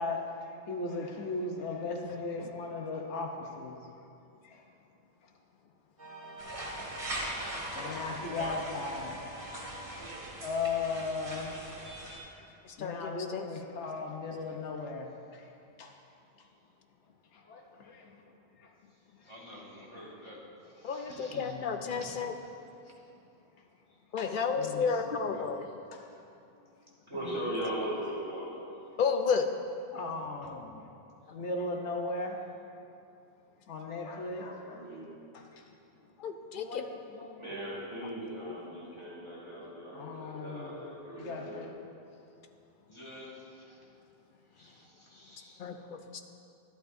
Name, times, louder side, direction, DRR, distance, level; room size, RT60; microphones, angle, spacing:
voice 1, 0.0-3.8 4.4-4.6 7.7-9.5 10.2-11.5 12.8-15.5 15.8-15.9 17.3-18.2 18.6-18.7 21.3-22.0 24.2-25.5 25.9-26.0 27.1-27.3 28.5-28.6 28.9-29.0 29.9-30.9 31.3-32.4 33.7-34.8 35.3-35.6 36.6-37.5 39.9-40.8 41.1-41.7, left 3 dB, 85° left, 2 dB, 1.1 m, -38 dB
sound 1, 6.0-10.3, equal, 45° right, 2.0 m, -46 dB
sound 2, 6.4-12.2, right 1 dB, 80° right, 2.0 m, -41 dB
voice 2, 8.1-8.5 19.2-20.4 20.8-22.1 22.4-22.9 42.9-43.8 44.6-45.6, left 1 dB, 25° left, -6 dB, 1.9 m, -49 dB
voice 3, 12.8-13.5 20.8-22.3 24.1-25.7 29.0-29.5 36.2-36.8 45.6-46.2, left 5 dB, 55° left, 6 dB, 0.6 m, -31 dB
voice 4, 27.1-28.5 34.5-35.2 37.4-41.7, right 1 dB, 25° right, -8 dB, 2.4 m, -38 dB
11.5 x 11.5 x 2.6 m, 2.6 s
omnidirectional pair, 1.1 m